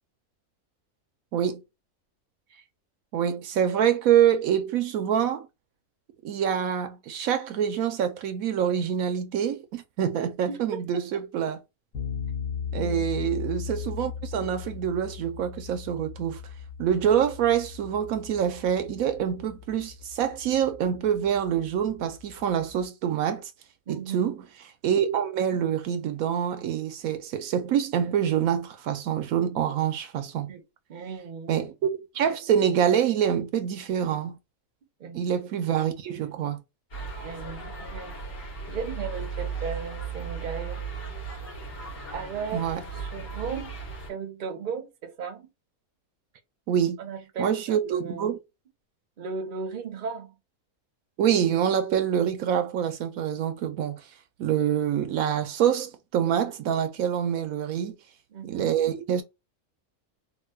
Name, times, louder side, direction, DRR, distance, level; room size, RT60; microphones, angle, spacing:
voice 1, 1.3-1.6 3.1-5.5 6.2-11.6 12.7-16.4 16.8-23.5 23.9-24.3 24.8-30.5 31.5-34.3 35.1-36.6 42.5-42.8 46.7-47.0 47.4-48.4 51.2-54.1 54.4-57.9 58.4-59.2, right 9 dB, 75° right, 1.0 m, -26 dB
voice 2, 10.5-10.8 12.7-13.0 23.9-24.3 30.5-30.6 30.9-31.7 35.0-35.2 37.2-38.2 38.7-40.8 42.1-42.7 42.9-43.8 44.1-45.5 47.0-48.3 49.2-50.4 58.3-58.7, right 5 dB, 45° right, 0.7 m, -36 dB
sound 1, 11.9-22.8, left 7 dB, 70° left, 1.4 m, -38 dB
sound 2, 36.9-44.1, right 5 dB, 50° left, 2.1 m, -36 dB
3.8 x 2.5 x 2.2 m
omnidirectional pair, 1.5 m